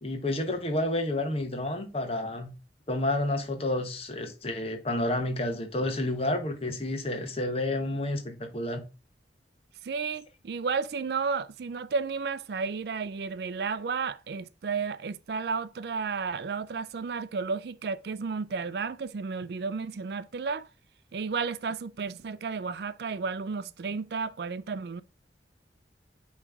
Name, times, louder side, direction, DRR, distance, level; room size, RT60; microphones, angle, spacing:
voice 1, 0.0-2.5 2.9-8.8, left 1 dB, 35° left, 1.1 m, -30 dB
voice 2, 9.8-20.7 21.1-25.0, right 5 dB, 65° right, 0.4 m, -32 dB
9.0 x 3.2 x 3.5 m
head